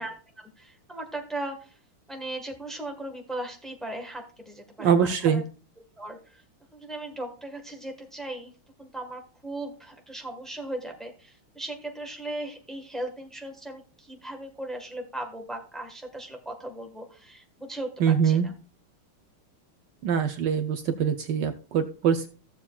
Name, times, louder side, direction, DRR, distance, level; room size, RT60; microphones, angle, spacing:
voice 1, 0.0-1.7 2.1-5.4 6.0-6.4 6.7-8.5 8.8-17.9 18.2-18.5, right 1 dB, ahead, 3 dB, 0.9 m, -37 dB
voice 2, 4.8-5.4 18.0-18.5 20.0-22.3, right 7 dB, 70° right, 8 dB, 1.1 m, -23 dB
15.0 x 7.2 x 2.3 m, 0.37 s
omnidirectional pair, 2.4 m